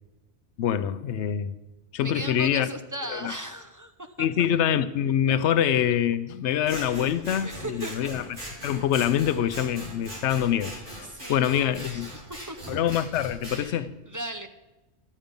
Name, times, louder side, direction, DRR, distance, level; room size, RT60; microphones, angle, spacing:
voice 1, 0.6-1.5 1.9-2.7 3.1-3.3 4.2-8.2 8.6-10.7 11.3-12.1 12.7-13.9, left 10 dB, 90° left, 0.9 m, -25 dB
voice 2, 2.0-4.5 6.7-8.1 11.0-12.8 13.5-14.5, right 1 dB, 25° right, 0.4 m, -38 dB
Scissors, 6.6-13.6, equal, 45° right, 3.8 m, -40 dB
12.5 x 8.7 x 5.2 m
omnidirectional pair, 1.1 m